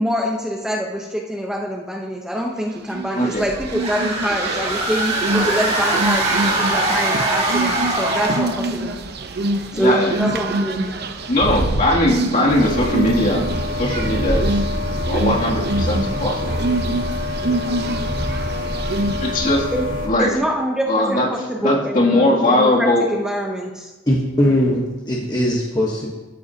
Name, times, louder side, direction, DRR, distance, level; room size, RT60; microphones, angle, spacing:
voice 1, 0.0-9.0 9.7-10.9 19.7-19.8 20.2-23.9, equal, 5° right, -1 dB, 0.8 m, -25 dB
sound 1, 2.9-19.4, right 2 dB, 55° right, 0.8 m, -26 dB
sound 2, 3.7-8.6, right 2 dB, 35° right, 2.1 m, -22 dB
voice 2, 9.7-10.6 11.3-14.5 15.1-16.6 18.7-18.8 19.2-19.7 20.1-20.3 20.9-21.3 21.6-23.0, left 1 dB, 45° left, -4 dB, 2.6 m, -19 dB
sound 3, 12.5-20.1, left 1 dB, 75° right, 3.3 m, -25 dB
voice 3, 24.1-26.1, left 1 dB, 20° left, -3 dB, 1.2 m, -20 dB
13.0 x 13.0 x 2.8 m, 1.2 s
head